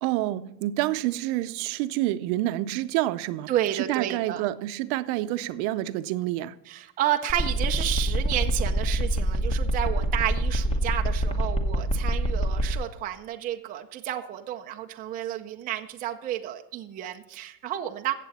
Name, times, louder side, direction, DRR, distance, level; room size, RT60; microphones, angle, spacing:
voice 1, 0.0-6.6, right 15 dB, 60° right, 0.7 m, -28 dB
voice 2, 3.5-4.5 6.7-18.1, right 12 dB, 20° right, 0.4 m, -31 dB
sound 1, 7.3-12.7, right 1 dB, 15° left, 1.0 m, -25 dB
15.5 x 7.7 x 4.1 m
cardioid pair, 155°, 47 cm